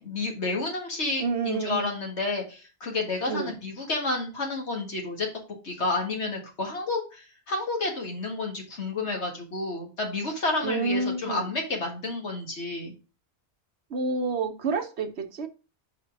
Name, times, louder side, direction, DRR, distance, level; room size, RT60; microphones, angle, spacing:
voice 1, 0.0-5.3 5.6-12.9, left 3 dB, 75° left, 2.1 m, -30 dB
voice 2, 1.2-1.9 3.3-3.5 10.6-11.5 13.9-15.5, right 4 dB, 70° right, 1.2 m, -29 dB
5.5 x 5.1 x 4.6 m
omnidirectional pair, 1.2 m